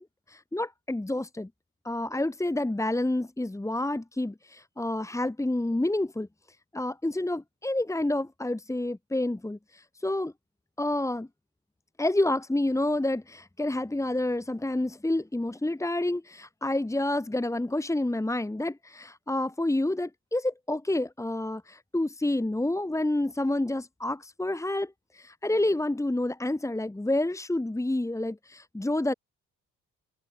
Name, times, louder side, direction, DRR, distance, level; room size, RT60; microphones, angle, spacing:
voice 1, 0.0-1.5 1.8-6.3 6.7-10.3 10.8-11.3 12.0-29.1, left 1 dB, 10° left, 2.4 m, -29 dB
open air
cardioid pair, 90°, 30 cm